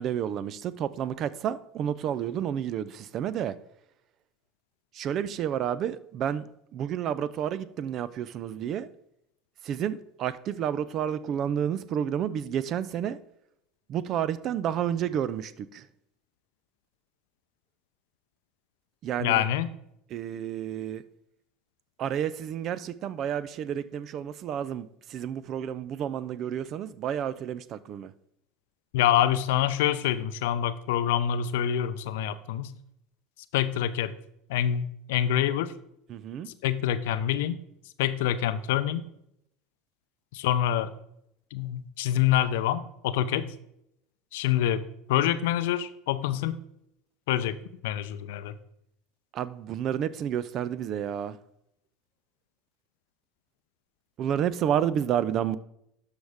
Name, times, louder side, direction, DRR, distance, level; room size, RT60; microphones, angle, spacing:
voice 1, 0.0-3.5 5.0-6.5 6.7-8.9 9.6-13.2 13.9-15.8 19.0-19.4 20.1-21.0 22.0-28.1 36.1-36.5 49.3-51.4 54.2-55.6, right 9 dB, 50° right, 0.5 m, -30 dB
voice 2, 19.2-19.7 28.9-32.7 33.5-34.1 34.5-35.7 36.6-37.6 38.0-39.0 40.3-40.9 41.5-43.5 44.3-46.6 47.3-47.6 47.8-48.6, left 11 dB, 70° left, 0.5 m, -26 dB
12.5 x 4.9 x 3.5 m
hypercardioid pair, 75°, 0 cm